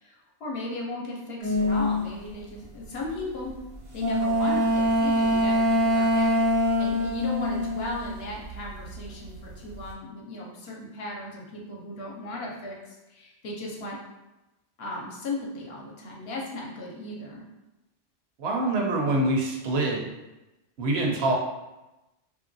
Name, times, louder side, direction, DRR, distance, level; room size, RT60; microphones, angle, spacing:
voice 1, 0.0-3.5 3.9-14.0 14.8-17.4, left 2 dB, 65° left, -2 dB, 0.8 m, -36 dB
sound 1, 1.4-2.0 4.0-8.7 8.9-9.7, left 1 dB, 80° right, 1.2 m, -24 dB
voice 2, 18.4-20.0 20.8-21.3, right 2 dB, 65° right, -1 dB, 0.8 m, -25 dB
2.9 x 2.6 x 2.6 m, 1.0 s
omnidirectional pair, 1.2 m